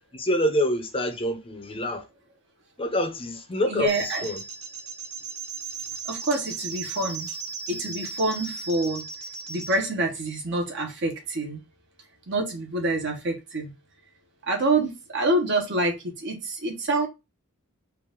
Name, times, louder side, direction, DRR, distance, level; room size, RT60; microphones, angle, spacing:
voice 1, 0.1-2.0 2.8-3.9 4.2-4.4, left 1 dB, 25° left, 0.7 m, -26 dB
voice 2, 3.7-4.3 6.0-7.3 7.7-9.0 9.5-11.6 12.3-13.7 14.5-17.1, right 2 dB, 55° right, 1.2 m, -27 dB
sound 1, 3.9-9.8, right 4 dB, 90° right, 0.8 m, -36 dB
4.7 x 2.6 x 3.6 m
head